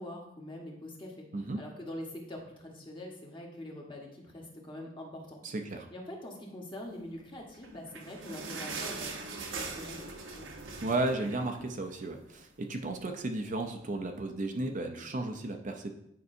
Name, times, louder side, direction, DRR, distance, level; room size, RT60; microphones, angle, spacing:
voice 1, 0.0-1.3 1.5-5.4 5.9-10.0 10.3-10.5, left 1 dB, 25° left, -1 dB, 1.3 m, -44 dB
voice 2, 5.4-5.9 10.8-15.9, right 2 dB, 40° right, 4 dB, 0.6 m, -34 dB
sound 1, 7.5-12.2 12.6-12.7 13.0-13.2 13.8-13.9, right 4 dB, 80° right, 0.9 m, -41 dB
9.4 x 5.3 x 2.7 m, 0.78 s
head